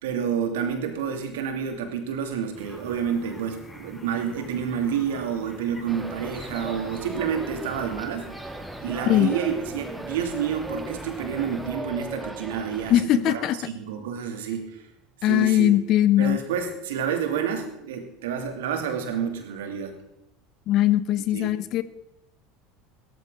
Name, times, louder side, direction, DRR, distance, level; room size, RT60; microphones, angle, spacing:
voice 1, 0.0-8.3 8.8-14.8 15.2-15.7 16.2-20.0 21.3-21.5, right 7 dB, 70° right, 4 dB, 2.7 m, -29 dB
sound 1, 2.5-11.7, left 2 dB, 15° left, 5.4 m, -45 dB
sound 2, 5.9-13.0, right 2 dB, 5° right, 2.0 m, -38 dB
voice 2, 12.9-13.6 15.2-16.4 20.7-21.8, left 13 dB, 50° left, 15 dB, 0.9 m, -20 dB
17.0 x 14.5 x 3.9 m, 0.86 s
hypercardioid pair, 75°, 0 cm